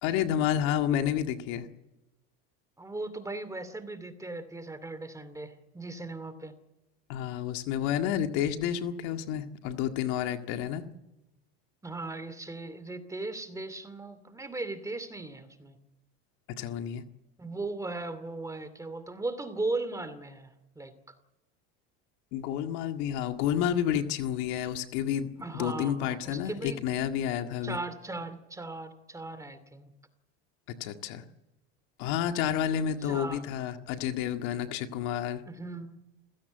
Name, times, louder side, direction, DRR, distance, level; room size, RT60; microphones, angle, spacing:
voice 1, 0.0-1.7 7.1-10.8 16.6-17.0 22.3-27.8 30.7-31.2 32.0-35.4, left 10 dB, 65° left, 6 dB, 1.9 m, -30 dB
voice 2, 2.8-6.5 11.8-15.8 17.4-20.9 25.4-26.8 27.6-29.9 33.0-33.4 35.5-36.0, right 2 dB, 10° right, 12 dB, 2.6 m, -37 dB
28.5 x 16.5 x 8.1 m, 0.98 s
supercardioid pair, 110°, 31 cm